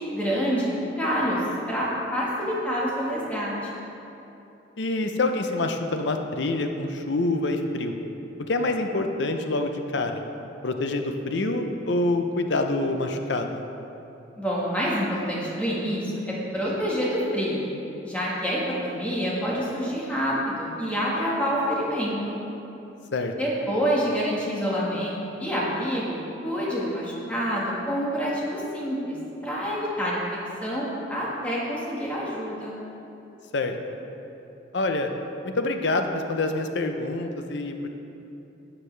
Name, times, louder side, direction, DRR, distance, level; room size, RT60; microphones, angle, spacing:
voice 1, 0.1-1.4 1.7-3.8 14.4-17.6 18.0-22.4 23.4-26.2 26.4-29.1 29.4-30.2 30.6-32.8, equal, 5° left, -6 dB, 1.5 m, -27 dB
voice 2, 4.8-7.9 8.5-10.2 10.6-13.6 23.1-23.3 33.5-33.7 34.7-35.1 35.4-37.9, left 2 dB, 70° left, 5 dB, 0.6 m, -26 dB
11.5 x 7.4 x 3.3 m, 2.9 s
head